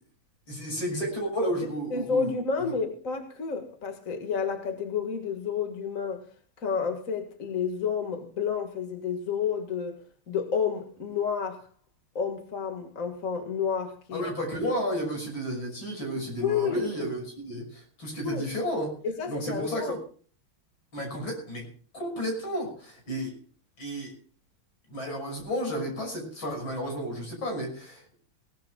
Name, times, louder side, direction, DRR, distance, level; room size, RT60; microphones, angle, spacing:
voice 1, 0.5-2.3 14.1-18.9 19.3-20.0 20.9-21.7 21.9-23.3 23.8-24.1 24.9-28.0, equal, 60° left, 6.9 m, -32 dB
voice 2, 1.9-6.2 6.6-10.0 10.3-11.7 12.2-14.2 14.6-14.8 16.4-16.9 18.3-18.5 19.0-20.0, left 6 dB, 40° left, 2.1 m, -30 dB
22.0 x 18.5 x 2.3 m
omnidirectional pair, 2.4 m